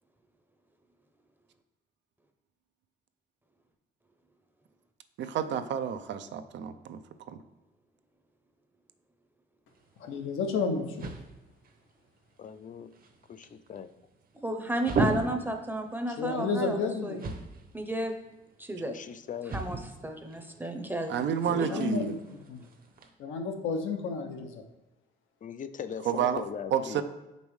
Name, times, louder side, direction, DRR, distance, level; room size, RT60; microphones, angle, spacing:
voice 1, 5.2-7.0 7.3-7.4 21.1-22.1 26.0-26.4 26.7-27.0, right 8 dB, 65° right, 9 dB, 0.5 m, -30 dB
sound 1, 9.7-23.1, right 3 dB, 45° right, 0.9 m, -38 dB
voice 2, 10.0-11.1 16.1-17.2 21.5-22.1 22.5-22.7 23.2-24.6, left 4 dB, 85° left, 4 dB, 0.8 m, -31 dB
voice 3, 12.4-12.9 13.3-13.9 18.9-19.5 25.4-27.0, left 7 dB, 40° left, 12 dB, 0.5 m, -39 dB
voice 4, 14.4-16.8 17.0-17.2 17.7-18.1 18.6-19.0 19.5-21.1 21.5-21.8, right 1 dB, 10° right, 5 dB, 0.7 m, -33 dB
6.1 x 5.3 x 3.2 m, 1.0 s
cardioid pair, 90°, 20 cm